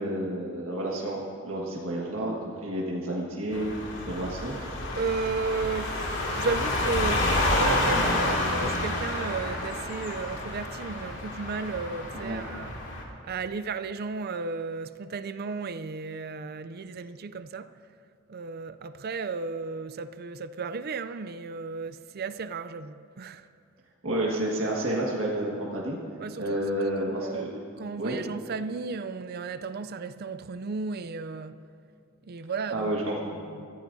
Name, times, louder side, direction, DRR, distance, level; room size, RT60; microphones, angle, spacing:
voice 1, 0.0-2.4 2.6-3.7 4.1-4.6 12.1-12.4 24.0-26.0 26.4-27.5 28.0-28.2 32.7-33.1, right 1 dB, 70° right, 1.7 m, -30 dB
sound 1, 3.5-13.0, left 1 dB, 65° left, 2.6 m, -29 dB
voice 2, 5.0-7.3 7.6-12.8 13.2-17.8 18.3-23.5 26.2-26.6 27.0-31.6 32.3-33.7, right 4 dB, 50° right, 0.4 m, -34 dB
24.0 x 15.0 x 2.7 m
head